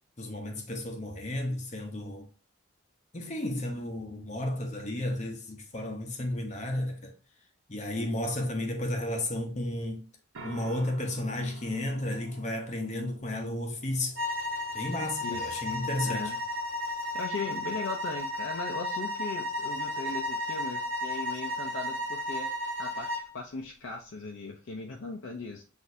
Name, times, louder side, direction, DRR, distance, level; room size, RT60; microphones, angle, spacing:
voice 1, 0.2-2.3 3.1-7.1 7.7-10.0 10.4-14.2 14.7-16.3, left 1 dB, 35° left, 0.7 m, -33 dB
sound 1, 10.3-22.1, right 2 dB, 85° right, 1.0 m, -53 dB
sound 2, 14.1-23.3, left 1 dB, 60° right, 1.8 m, -33 dB
voice 2, 15.2-15.6 16.1-16.4 17.1-22.5 22.8-25.6, left 3 dB, 80° left, 0.5 m, -38 dB
6.1 x 2.6 x 2.6 m
head